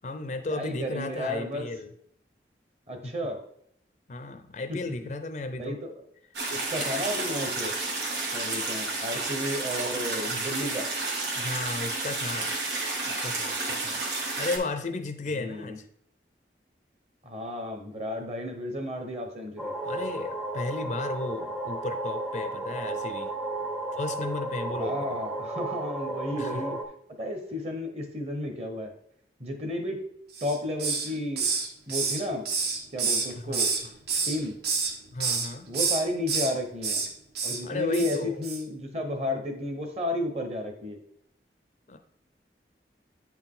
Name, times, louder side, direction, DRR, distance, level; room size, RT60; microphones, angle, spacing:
voice 1, 0.0-1.9 3.0-3.3 4.1-5.8 11.3-12.6 13.0-14.0 14.4-15.9 19.8-23.3 23.9-25.2 26.4-26.8 33.4-33.9 35.1-35.7 37.6-38.4 41.9-42.0, left 2 dB, 40° left, 8 dB, 0.5 m, -34 dB
voice 2, 0.6-1.7 2.9-3.4 5.6-5.9 6.5-7.8 8.3-10.8 15.4-15.8 17.2-19.7 24.8-26.8 27.2-28.9 29.4-30.0 30.4-31.5 31.9-32.4 32.9-33.7 34.3-34.5 35.7-37.0 37.4-41.0, left 1 dB, 35° right, 4 dB, 1.1 m, -32 dB
sound 1, 6.3-14.6, right 3 dB, 80° right, 1.7 m, -31 dB
sound 2, 19.6-26.9, right 2 dB, 5° right, 0.6 m, -33 dB
Hiss, 30.3-31.1 31.4-33.8 34.1-34.9 35.2-35.5 35.7-36.5 36.8-37.1 37.3-37.6 37.9-38.2 38.4-38.6, right 5 dB, 65° right, 1.2 m, -28 dB
8.5 x 4.4 x 3.8 m, 0.69 s
head